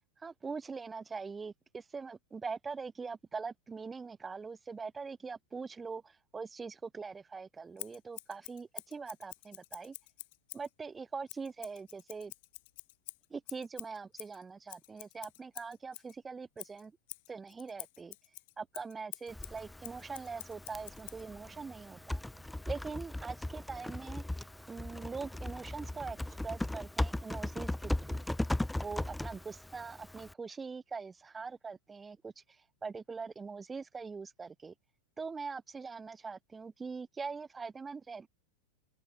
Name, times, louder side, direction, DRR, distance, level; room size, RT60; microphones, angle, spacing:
voice 1, 0.2-10.0 10.5-12.3 13.3-16.9 17.3-18.2 18.6-22.2 22.7-24.2 24.7-26.2 26.4-28.2 28.8-34.7 35.2-38.3, right 4 dB, 15° right, 0.4 m, -43 dB
Scissors, 7.8-10.7 11.3-16.1 16.6-21.2, left 23 dB, 50° left, 2.8 m, -48 dB
Typing, 19.3-30.3, left 1 dB, 5° left, 0.9 m, -38 dB
sound 1, 20.6-29.5, right 40 dB or more, 45° right, 6.6 m, -70 dB
figure-of-eight pair, 90°, 0 cm